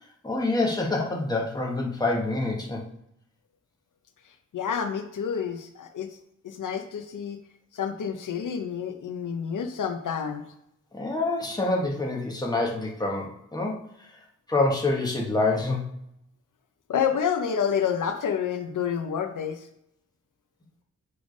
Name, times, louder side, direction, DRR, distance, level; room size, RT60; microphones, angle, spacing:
voice 1, 0.2-2.8 10.9-14.2 14.5-15.9, left 2 dB, 10° left, -1 dB, 1.1 m, -27 dB
voice 2, 4.5-6.1 6.4-7.4 7.7-10.4 16.9-19.7, left 7 dB, 75° left, 6 dB, 0.7 m, -28 dB
7.0 x 3.4 x 5.2 m, 0.76 s
wide cardioid pair, 165°, 31 cm